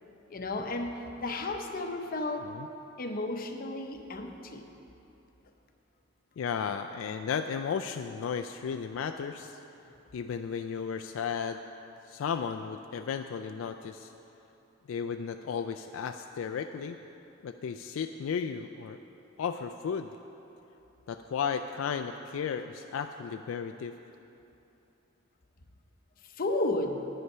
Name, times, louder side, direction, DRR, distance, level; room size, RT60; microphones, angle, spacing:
voice 1, 0.3-2.5 3.0-4.7 26.4-27.1, left 2 dB, 45° left, 5 dB, 0.7 m, -33 dB
voice 2, 6.4-9.6 10.1-11.6 12.1-14.1 14.9-17.0 17.4-19.0 19.4-20.1 21.1-24.0, left 6 dB, 75° left, 7 dB, 0.3 m, -34 dB
9.7 x 8.7 x 5.5 m, 2.9 s
head